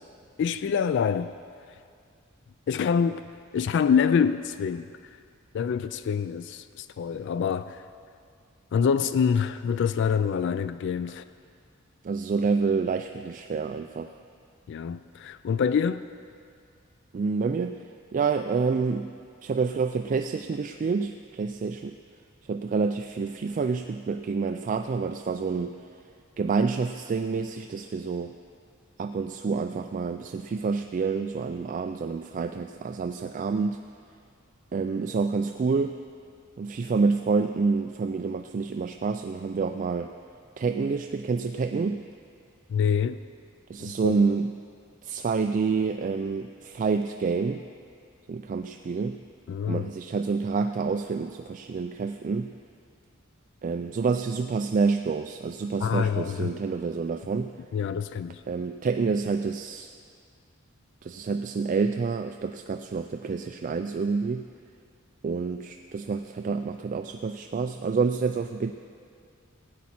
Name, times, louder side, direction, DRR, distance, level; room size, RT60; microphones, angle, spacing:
voice 1, 0.4-1.3 2.7-3.2 3.5-4.9 5.5-7.8 8.7-11.2 14.7-16.0 42.7-43.2 43.8-44.1 49.5-49.9 55.8-56.5 57.7-58.4, left 7 dB, 55° left, 13 dB, 0.3 m, -26 dB
voice 2, 12.0-14.2 17.1-17.8 18.1-19.1 19.4-22.0 22.5-25.8 26.4-28.3 29.0-33.8 34.7-36.0 36.6-40.1 40.6-42.0 43.7-44.6 45.0-47.6 48.3-49.2 49.7-52.5 53.6-57.5 58.5-59.9 61.0-64.5 65.2-68.7, right 4 dB, 40° right, 7 dB, 0.3 m, -28 dB
16.0 x 9.5 x 4.3 m, 2.3 s
head